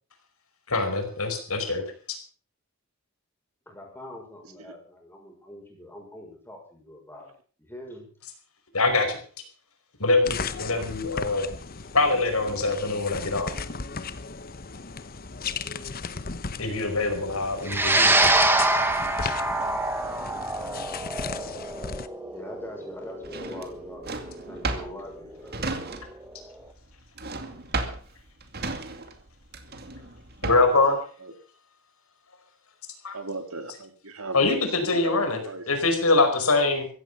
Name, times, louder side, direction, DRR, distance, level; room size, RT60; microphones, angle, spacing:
voice 1, 0.7-2.2 8.7-9.2 10.0-11.5 11.9-13.5 16.6-18.1 19.2-19.3 30.4-31.0 33.0-33.2 33.7-33.8 34.3-36.9, left 3 dB, 80° left, 5 dB, 5.0 m, -24 dB
voice 2, 3.7-7.3 7.6-8.1 22.3-24.1 24.5-25.8, left 1 dB, 10° left, 0 dB, 6.3 m, -43 dB
sound 1, 10.3-22.1, left 5 dB, 45° left, 1.0 m, -36 dB
sound 2, 17.7-26.2, right 2 dB, 10° right, 1.7 m, -25 dB
Drawer open or close, 23.2-26.4 26.6-30.9, right 3 dB, 45° right, 2.3 m, -34 dB
voice 3, 33.1-34.4 34.9-35.6, right 3 dB, 80° right, 8 dB, 2.6 m, -36 dB
15.5 x 15.5 x 5.5 m, 0.42 s
head